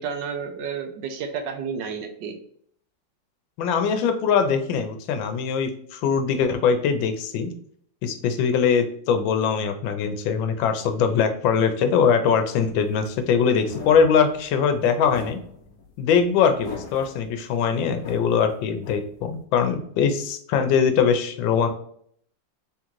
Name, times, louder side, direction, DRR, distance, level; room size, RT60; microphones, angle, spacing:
voice 1, 0.0-2.4, right 6 dB, 75° right, 5 dB, 1.2 m, -31 dB
voice 2, 3.6-7.5 8.0-15.4 16.0-21.7, left 6 dB, 90° left, 7 dB, 1.4 m, -22 dB
sound 1, 12.8-19.4, left 5 dB, 60° left, 1.0 m, -41 dB
3.8 x 3.7 x 3.0 m, 0.64 s
omnidirectional pair, 2.0 m